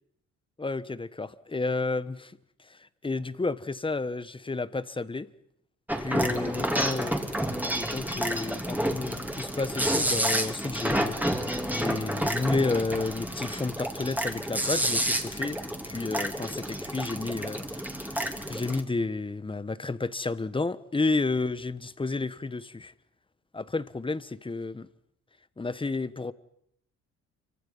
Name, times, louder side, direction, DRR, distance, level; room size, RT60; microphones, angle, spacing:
voice 1, 0.6-2.3 3.0-5.3 6.0-7.2 7.7-11.2 11.7-15.6 15.9-18.2 18.5-22.9 23.5-24.9 25.6-26.3, left 3 dB, 15° left, 1.2 m, -31 dB
sound 1, 5.9-18.8, right 1 dB, 5° right, 3.3 m, -30 dB
28.0 x 25.0 x 5.6 m
cardioid pair, 90°, 30 cm